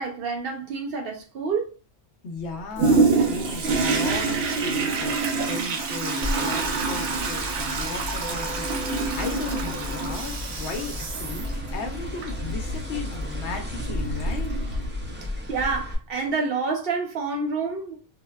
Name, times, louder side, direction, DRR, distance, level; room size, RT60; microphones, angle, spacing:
voice 1, 0.0-1.7 15.5-18.0, right 4 dB, 60° right, 0.8 m, -28 dB
voice 2, 2.2-5.2 5.5-14.5, left 4 dB, 70° left, 0.9 m, -36 dB
Toilet flush, 2.8-15.2 15.7-15.8, right 4 dB, 85° right, 1.0 m, -27 dB
sound 1, 6.2-15.9, left 1 dB, 20° right, 0.3 m, -33 dB
3.8 x 2.1 x 2.2 m
omnidirectional pair, 1.2 m